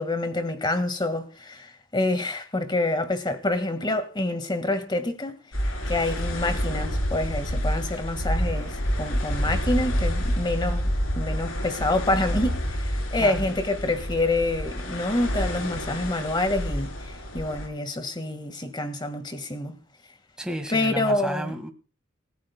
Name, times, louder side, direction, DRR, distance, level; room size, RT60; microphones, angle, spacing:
voice 1, 0.0-5.4 5.9-19.8 20.7-21.5, left 2 dB, 20° left, 1.7 m, -27 dB
sound 1, 5.5-17.7, equal, 80° left, 3.8 m, -28 dB
voice 2, 20.4-21.7, right 1 dB, 5° right, 1.6 m, -32 dB
27.5 x 14.5 x 2.2 m
head